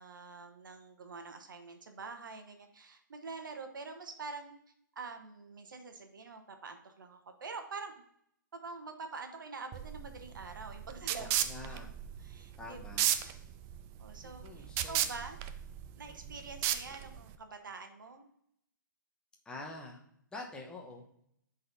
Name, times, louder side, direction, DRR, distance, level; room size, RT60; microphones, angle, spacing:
voice 1, 0.0-4.6 5.0-8.0 8.5-11.8 12.2-13.4 14.0-15.4 16.0-18.3, right 4 dB, 70° right, 6 dB, 1.1 m, -46 dB
sound 1, 9.7-17.4, right 11 dB, 20° right, 0.3 m, -35 dB
voice 2, 11.2-11.9 12.6-13.1 14.2-15.2 16.3-16.4 19.4-20.0 20.3-21.0, left 2 dB, 10° left, 0 dB, 1.0 m, -46 dB
10.5 x 4.0 x 2.7 m, 0.73 s
hypercardioid pair, 130°, 11 cm